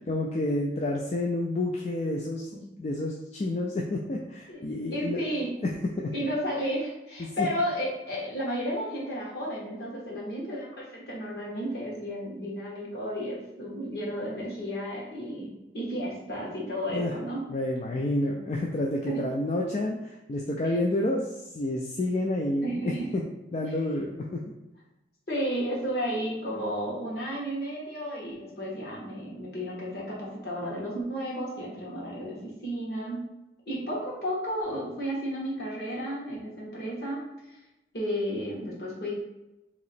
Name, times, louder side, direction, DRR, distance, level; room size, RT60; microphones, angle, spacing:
voice 1, 0.0-2.5 2.8-5.3 5.6-6.1 7.2-7.5 16.9-17.1 17.5-23.2 23.5-24.4, left 1 dB, 35° left, -1 dB, 0.3 m, -29 dB
voice 2, 4.9-5.5 6.1-17.4 19.1-19.2 22.6-23.1 25.3-33.2 33.7-37.6 37.9-39.1, equal, 60° left, -5 dB, 1.4 m, -33 dB
3.0 x 2.8 x 4.1 m, 0.94 s
head